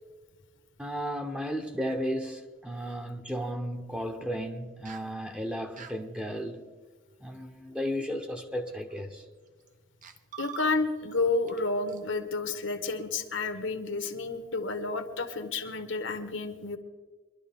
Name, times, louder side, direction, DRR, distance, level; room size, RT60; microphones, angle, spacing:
voice 1, 0.8-6.7 7.2-9.3, equal, 5° right, 0.9 m, -34 dB
sound 1, 4.8-5.1 5.8-6.0 7.7-7.9 8.7-9.0 9.7-9.8 10.0-11.2 11.5-11.6 11.9-12.0, right 9 dB, 40° right, 0.7 m, -44 dB
voice 2, 10.4-16.8, left 3 dB, 70° left, 1.3 m, -30 dB
23.5 x 12.0 x 3.5 m
head